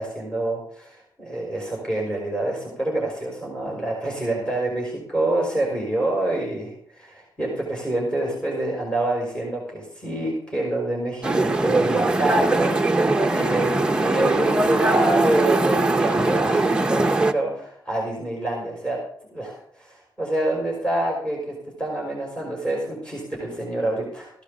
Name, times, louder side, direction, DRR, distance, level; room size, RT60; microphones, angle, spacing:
voice 1, 0.0-12.7 13.0-19.0 19.3-24.3, right 1 dB, 10° left, -2 dB, 5.6 m, -27 dB
sound 1, 11.2-17.3, right 2 dB, 10° right, 0.9 m, -21 dB
16.0 x 11.5 x 4.0 m, 0.64 s
wide cardioid pair, 150°, 8 cm